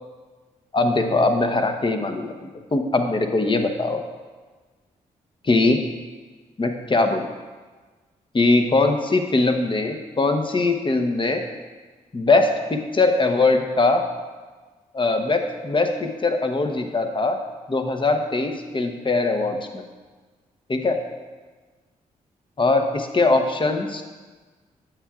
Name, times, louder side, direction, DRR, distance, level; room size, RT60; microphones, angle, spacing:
voice 1, 0.7-4.0 5.4-5.8 6.6-7.2 8.3-11.4 12.1-14.0 14.9-17.4 17.7-19.8 20.7-21.0 22.6-24.0, left 3 dB, 35° left, 5 dB, 0.9 m, -21 dB
8.7 x 7.2 x 2.4 m, 1.3 s
supercardioid pair, 50°, 15 cm